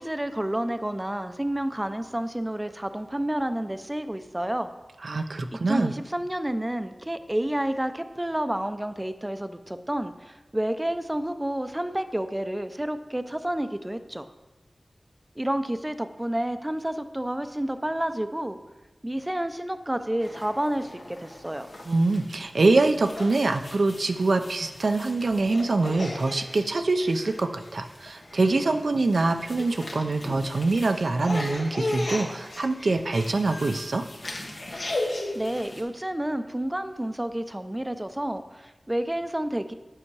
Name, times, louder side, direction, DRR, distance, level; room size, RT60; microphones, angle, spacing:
voice 1, 0.0-4.7 5.5-14.3 15.4-18.6 19.0-21.7 34.9-39.7, right 1 dB, 15° right, 10 dB, 0.6 m, -30 dB
voice 2, 5.0-5.9 21.9-34.0, right 3 dB, 80° right, 7 dB, 0.6 m, -24 dB
sound 1, 20.2-35.8, left 1 dB, 70° left, 1.5 m, -37 dB
8.9 x 5.7 x 4.7 m, 1.2 s
wide cardioid pair, 55°, 0 cm